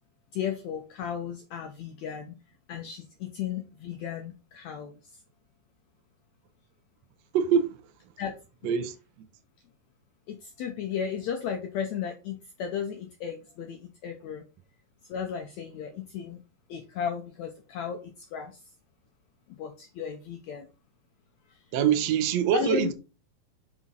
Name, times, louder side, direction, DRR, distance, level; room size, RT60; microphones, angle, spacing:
voice 1, 0.3-2.4 2.7-4.9 8.2-8.4 10.3-14.4 15.1-16.4 16.7-18.6 19.6-20.7 22.5-22.9, left 7 dB, 85° left, 1.6 m, -34 dB
voice 2, 7.3-7.7 8.6-8.9 21.7-22.9, right 8 dB, 85° right, 1.4 m, -24 dB
6.1 x 5.5 x 3.9 m
omnidirectional pair, 4.2 m